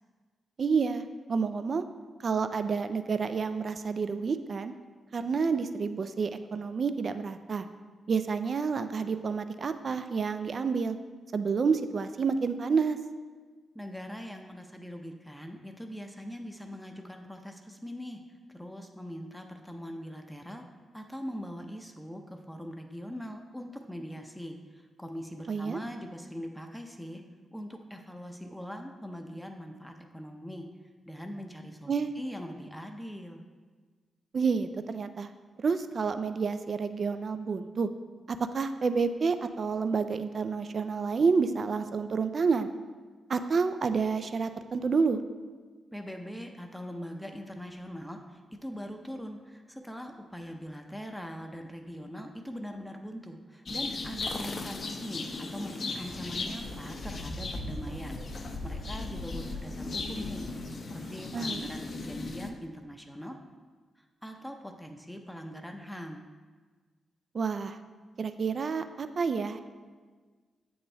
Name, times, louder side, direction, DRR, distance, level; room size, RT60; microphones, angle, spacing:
voice 1, 0.6-1.0 1.3-1.9 2.2-4.7 5.1-7.7 8.1-11.0 11.3-13.0 25.5-25.8 31.9-32.2 34.3-35.3 35.6-37.9 38.3-42.7 43.3-45.2 61.3-61.7 67.3-67.8 68.2-69.6, right 5 dB, 55° right, 10 dB, 0.3 m, -29 dB
voice 2, 13.7-18.2 18.6-20.6 20.9-27.2 27.5-30.7 31.1-33.4 45.9-63.4 64.2-66.2, equal, 5° left, 4 dB, 0.6 m, -42 dB
sound 1, 53.7-62.5, left 3 dB, 55° left, 0.6 m, -37 dB
sound 2, 54.8-61.3, right 1 dB, 75° right, 1.5 m, -52 dB
7.9 x 4.3 x 3.3 m, 1.5 s
cardioid pair, 55°, 0 cm